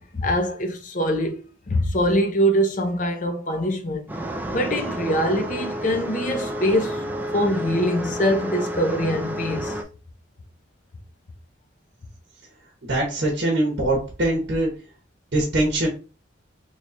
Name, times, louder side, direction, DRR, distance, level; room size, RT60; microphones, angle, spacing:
voice 1, 0.1-4.1 4.5-7.0 7.3-9.7, equal, 40° left, 0.6 m, -23 dB
sound 1, 4.1-9.8, equal, 10° right, 0.3 m, -30 dB
voice 2, 12.8-14.7 15.3-15.9, right 1 dB, 55° right, 0.9 m, -22 dB
3.1 x 2.3 x 4.0 m
head